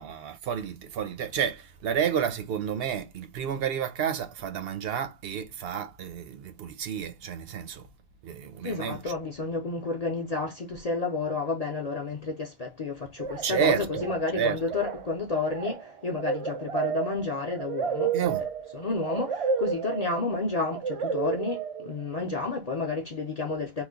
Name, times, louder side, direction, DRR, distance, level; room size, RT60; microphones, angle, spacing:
voice 1, 0.0-7.8 8.2-9.0 13.4-14.6 18.1-18.4, right 8 dB, 75° right, 0.9 m, -30 dB
voice 2, 8.6-18.2 18.7-23.8, left 3 dB, 45° left, 0.7 m, -31 dB
sound 1, 13.2-13.6 13.9-14.3 14.6-22.2, right 6 dB, 55° right, 0.4 m, -32 dB
3.1 x 2.1 x 3.6 m
omnidirectional pair, 1.0 m